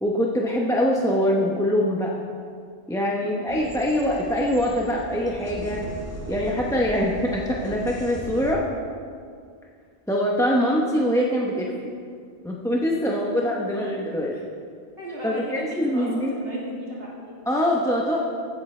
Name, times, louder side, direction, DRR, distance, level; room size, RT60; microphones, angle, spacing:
voice 1, 0.0-2.1 2.9-5.8 6.3-8.6 10.1-11.7 12.4-14.3 15.2-16.3 17.5-18.2, equal, 5° left, -3 dB, 0.7 m, -23 dB
voice 2, 3.2-3.6 13.0-13.4 14.3-14.4 15.0-17.4, equal, 60° right, -6 dB, 3.0 m, -36 dB
sound 1, 3.5-8.5, equal, 15° right, 1.1 m, -38 dB
15.5 x 8.5 x 3.3 m, 2.2 s
omnidirectional pair, 1.1 m